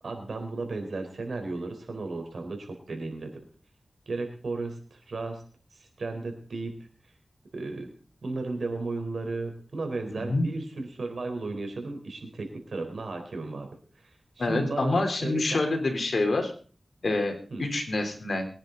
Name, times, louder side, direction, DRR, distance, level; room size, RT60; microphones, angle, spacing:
voice 1, 0.0-3.4 4.1-5.4 6.0-6.7 7.5-7.9 8.2-13.7 14.0-15.6 17.5-17.6, right 3 dB, 90° right, 4 dB, 4.2 m, -34 dB
voice 2, 14.4-16.5 17.0-18.5, left 2 dB, 80° left, 4 dB, 3.7 m, -27 dB
23.0 x 10.5 x 4.0 m, 0.41 s
cardioid pair, 50°, 0 cm